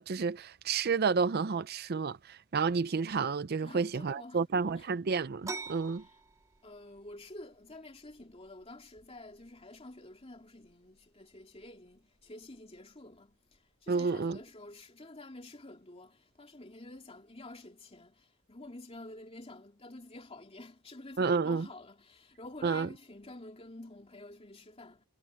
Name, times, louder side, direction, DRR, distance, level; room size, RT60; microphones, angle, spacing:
voice 1, 0.0-6.0 13.9-14.4 21.2-21.7 22.6-22.9, right 5 dB, 45° right, 0.5 m, -30 dB
voice 2, 3.6-4.4 4.8-4.9 6.6-13.4 13.8-25.0, left 2 dB, 25° left, 2.7 m, -49 dB
sound 1, 5.4-14.8, right 4 dB, 15° right, 3.0 m, -50 dB
head